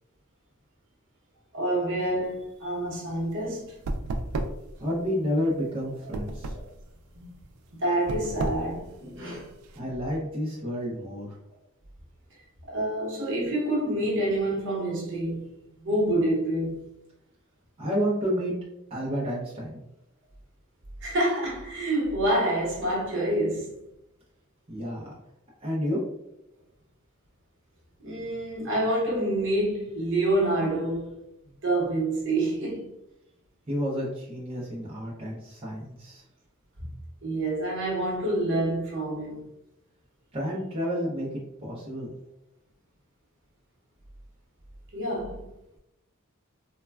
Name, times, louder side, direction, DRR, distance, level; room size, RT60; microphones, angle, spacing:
voice 1, 1.5-3.8 7.2-7.3 7.7-9.5 12.7-15.5 15.8-16.9 21.0-23.7 28.0-31.2 31.6-32.9 36.8-36.9 37.2-39.4 44.9-45.4, right 1 dB, 60° right, 0.9 m, -27 dB
sound 1, 2.2-9.8, right 2 dB, 90° right, 0.4 m, -35 dB
voice 2, 4.8-6.5 9.8-11.3 17.8-18.5 18.9-19.8 24.7-25.1 25.6-26.0 33.7-36.2 40.3-41.3 41.6-42.1, equal, 25° right, 0.6 m, -30 dB
3.2 x 2.2 x 2.3 m
head